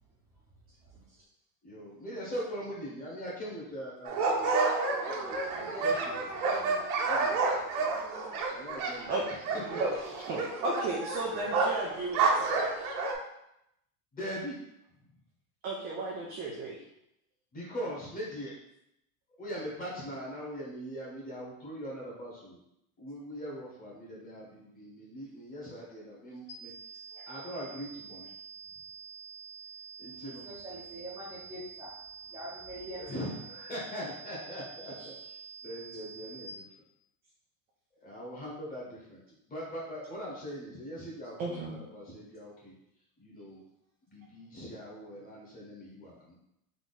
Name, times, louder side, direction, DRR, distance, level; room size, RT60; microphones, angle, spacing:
voice 1, 1.6-4.4 4.9-6.1 7.1-7.4 7.7-8.0 8.5-9.8 14.1-14.6 17.5-18.5 19.4-22.6 23.0-26.7 27.3-28.3 30.0-30.5 33.0-35.1 35.6-36.6 38.0-39.2 39.5-42.7 43.2-43.6 44.1-46.4, equal, 20° left, -5 dB, 1.3 m, -41 dB
sound 1, 4.1-13.1, right 4 dB, 80° right, 1.2 m, -30 dB
voice 2, 5.5-6.9 30.4-31.9 32.3-33.1, equal, 10° right, -8 dB, 0.7 m, -44 dB
voice 3, 9.8-12.9 15.6-16.8 27.2-27.3 35.0-35.1 41.4-41.8, right 2 dB, 25° right, -3 dB, 0.3 m, -34 dB
sound 2, 26.5-36.5, right 6 dB, 90° left, 1.0 m, -47 dB
3.8 x 2.9 x 4.1 m, 0.81 s
supercardioid pair, 150°, 44 cm